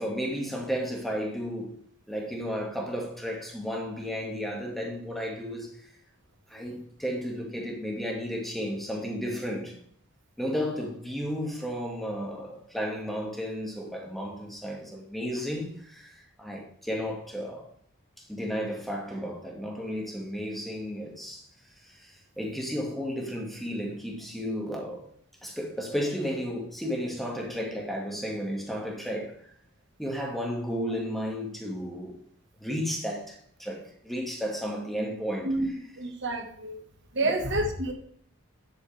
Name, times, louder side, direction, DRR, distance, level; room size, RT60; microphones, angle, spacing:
voice 1, 0.0-1.7 2.1-5.9 6.5-9.7 10.4-17.7 18.2-21.4 21.8-25.0 25.4-29.3 30.0-32.2 32.6-35.8, equal, ahead, 2.1 m, -33 dB
voice 2, 36.0-36.8 37.1-37.9, right 2 dB, 55° right, 1.7 m, -28 dB
9.8 x 8.5 x 3.5 m
head